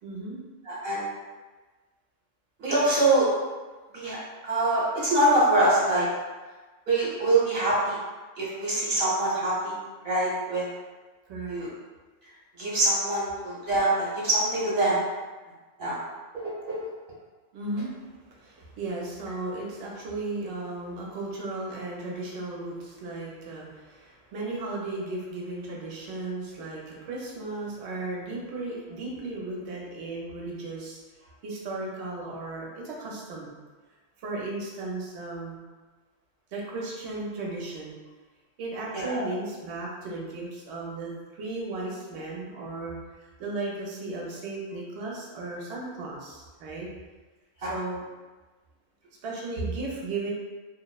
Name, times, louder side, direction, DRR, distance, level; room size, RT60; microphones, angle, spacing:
voice 1, 0.0-0.4 11.3-11.6 17.5-31.0 31.4-33.5 34.2-35.6 36.5-37.9 38.6-46.9 47.6-48.0 49.2-50.3, right 2 dB, 70° right, -3 dB, 0.8 m, -35 dB
voice 2, 0.6-1.1 2.6-3.3 3.9-4.2 4.4-6.1 6.9-8.0 8.4-10.7 11.5-11.7 12.6-15.0 15.8-16.0 16.3-16.8 38.9-39.3 47.6-47.7, right 2 dB, 50° right, -8 dB, 1.1 m, -24 dB
2.7 x 2.0 x 2.3 m, 1.3 s
omnidirectional pair, 1.3 m